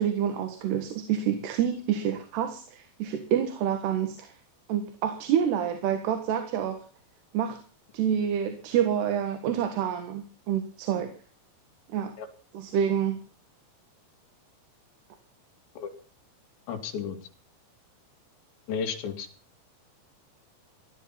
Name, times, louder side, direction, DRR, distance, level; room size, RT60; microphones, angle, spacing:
voice 1, 0.0-4.3 4.7-6.8 7.3-7.6 7.9-11.1 11.9-12.2 12.5-13.2, right 9 dB, 70° right, 7 dB, 3.5 m, -27 dB
voice 2, 16.7-17.2 18.7-19.3, left 7 dB, 75° left, 2 dB, 5.0 m, -32 dB
16.5 x 12.5 x 5.8 m, 0.39 s
omnidirectional pair, 5.2 m